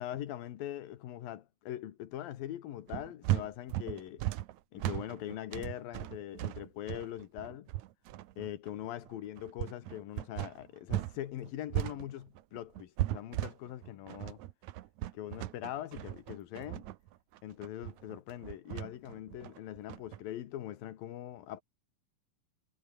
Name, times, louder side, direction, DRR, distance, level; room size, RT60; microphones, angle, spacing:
voice 1, 0.0-4.2 4.7-7.7 8.4-14.4 15.1-16.8 17.4-21.6, left 12 dB, 75° left, 3.2 m, -42 dB
sound 1, 2.9-11.2 11.4-20.2, right 15 dB, 70° right, 1.9 m, -37 dB
omnidirectional pair, 4.2 m